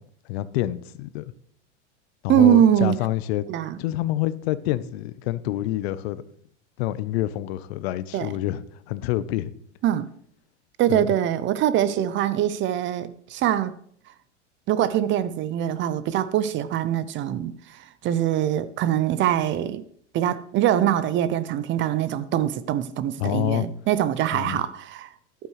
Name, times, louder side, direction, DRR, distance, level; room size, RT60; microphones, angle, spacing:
voice 1, 0.3-1.3 2.2-3.5 3.8-6.2 6.8-9.5 10.9-11.1 23.2-23.7 24.3-24.6, left 14 dB, 60° left, 0.7 m, -27 dB
voice 2, 2.3-3.0 3.5-3.8 8.1-8.3 9.8-10.1 10.8-13.7 14.7-19.8 20.1-25.1, right 11 dB, 35° right, 0.6 m, -23 dB
11.5 x 8.8 x 3.2 m
hypercardioid pair, 105°, 35 cm